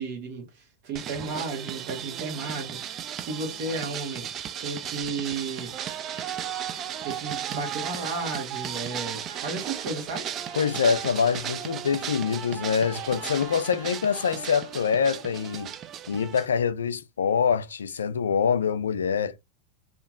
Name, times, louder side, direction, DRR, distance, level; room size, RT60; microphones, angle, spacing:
voice 1, 0.0-4.3 4.6-5.7 6.7-10.3, right 3 dB, 60° right, 1.4 m, -34 dB
sound 1, 0.9-16.5, right 10 dB, 35° right, 0.3 m, -35 dB
sound 2, 5.0-15.2, right 4 dB, 80° right, 1.1 m, -48 dB
voice 2, 10.6-15.7 16.1-19.4, left 6 dB, 85° left, 0.3 m, -25 dB
2.8 x 2.5 x 2.4 m
hypercardioid pair, 100°, 0 cm